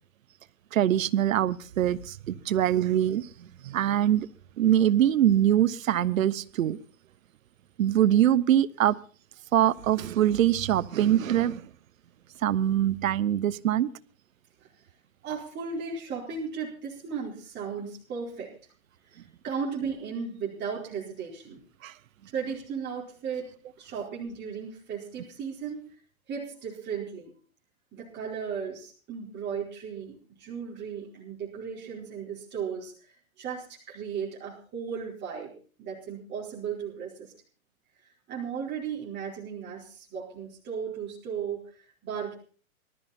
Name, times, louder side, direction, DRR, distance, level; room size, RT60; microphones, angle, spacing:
voice 1, 0.7-4.3 4.6-6.8 7.8-9.0 9.5-11.7 12.4-13.9 21.8-21.9, right 11 dB, 70° right, 17 dB, 1.0 m, -23 dB
voice 2, 15.2-18.5 19.0-21.6 22.3-23.5 23.8-25.9 26.3-27.3 27.9-32.9 33.4-35.5 35.8-37.3 38.3-42.3, right 6 dB, 25° right, -4 dB, 4.5 m, -36 dB
19.0 x 13.5 x 4.3 m, 0.40 s
hypercardioid pair, 125°, 42 cm